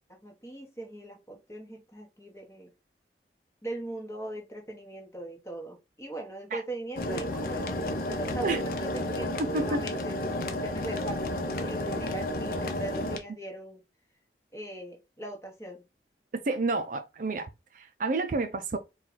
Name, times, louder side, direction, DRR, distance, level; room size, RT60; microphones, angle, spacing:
voice 1, 0.1-2.7 3.6-13.8 14.5-15.8, right 1 dB, 15° left, 1.0 m, -40 dB
sound 1, 7.0-13.2, left 1 dB, 55° left, 0.6 m, -32 dB
voice 2, 16.3-17.5 17.7-18.8, right 3 dB, 45° right, 0.4 m, -29 dB
4.3 x 2.3 x 3.9 m
head